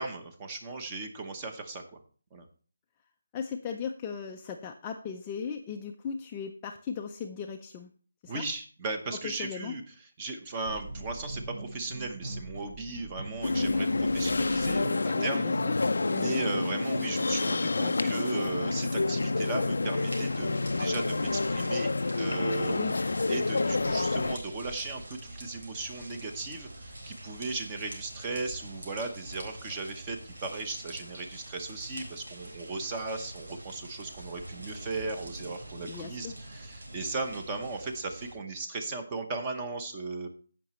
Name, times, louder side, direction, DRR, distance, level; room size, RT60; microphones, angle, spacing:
voice 1, 0.0-2.0 2.3-2.5 8.3-9.8 10.2-15.5 15.8-22.8 23.3-40.3, right 3 dB, 15° right, 5 dB, 0.8 m, -37 dB
voice 2, 3.3-7.9 8.2-8.4 9.2-9.7 15.1-15.5 16.1-16.4 17.6-18.2 22.7-23.0 35.9-36.3, left 6 dB, 15° left, 2 dB, 0.4 m, -37 dB
sound 1, 10.7-17.3, right 2 dB, 65° right, 3.2 m, -42 dB
sound 2, 13.4-24.4, left 3 dB, 80° left, 0.4 m, -28 dB
sound 3, 19.9-38.3, right 1 dB, 80° right, 4.0 m, -45 dB
15.5 x 5.9 x 3.1 m, 0.41 s
hypercardioid pair, 175°, 0 cm